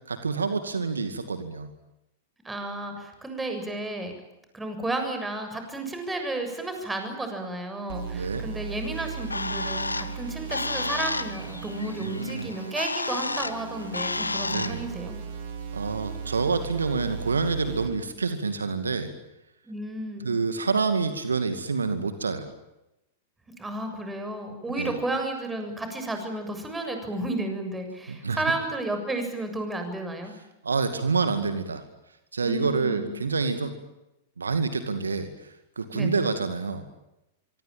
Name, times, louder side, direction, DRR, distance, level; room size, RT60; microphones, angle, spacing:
voice 1, 0.1-1.7 8.1-8.4 12.0-12.5 14.5-14.8 15.7-19.1 20.2-22.5 24.7-24.9 28.1-28.4 30.6-31.8 32.3-33.7 34.4-36.9, right 4 dB, 75° right, 9 dB, 2.3 m, -27 dB
voice 2, 2.4-4.1 4.5-15.2 19.6-20.3 23.6-30.3 32.4-33.1 35.9-36.3, right 2 dB, 10° right, 5 dB, 7.2 m, -32 dB
sound 1, 7.9-17.9, right 6 dB, 55° right, 5.0 m, -37 dB
Bird, 8.9-14.8, left 3 dB, 85° left, 1.3 m, -32 dB
25.0 x 25.0 x 9.1 m, 0.91 s
figure-of-eight pair, 95°, 0 cm